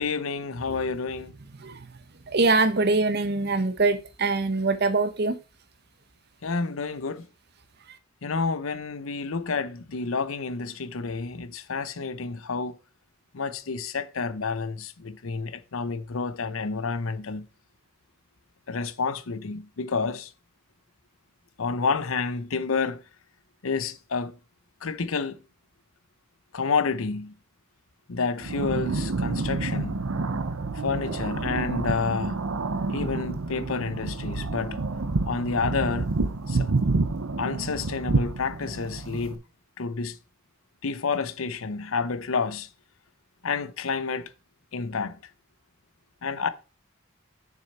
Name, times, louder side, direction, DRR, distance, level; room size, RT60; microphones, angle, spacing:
voice 1, 0.0-1.3 6.4-7.3 8.2-12.8 13.3-17.5 18.7-20.3 21.6-23.0 23.6-24.4 24.8-25.4 26.5-27.3 28.1-30.0 30.7-32.4 32.9-34.8 35.3-36.1 36.5-36.7 37.4-39.4 39.8-40.2 40.8-42.7 43.4-44.3 44.7-45.2 46.2-46.5, left 4 dB, 85° left, 0.7 m, -29 dB
voice 2, 2.3-5.4, right 3 dB, 50° right, 0.9 m, -23 dB
sound 1, 28.4-39.4, right 3 dB, 90° right, 0.8 m, -28 dB
6.7 x 6.3 x 4.2 m
head